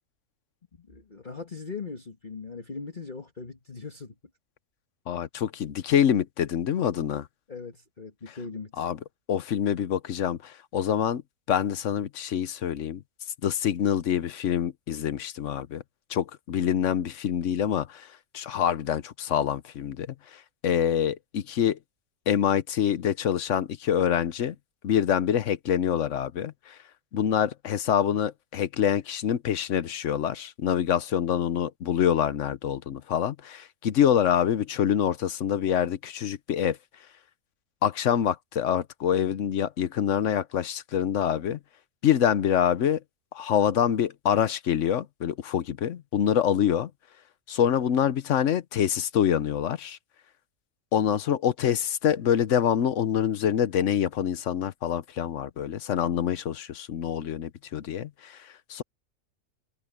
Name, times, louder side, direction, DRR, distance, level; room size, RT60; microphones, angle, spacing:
voice 1, 0.7-4.1 7.5-8.9, left 4 dB, 35° left, 1.8 m, -40 dB
voice 2, 5.1-7.3 8.8-9.0 9.3-11.2 11.5-13.0 13.4-15.8 16.1-21.8 22.3-24.6 24.8-26.8 27.1-36.8 37.8-41.6 42.0-43.0 43.3-46.9 47.5-50.0 50.9-58.8, left 9 dB, 60° left, 1.1 m, -26 dB
omnidirectional pair, 1.5 m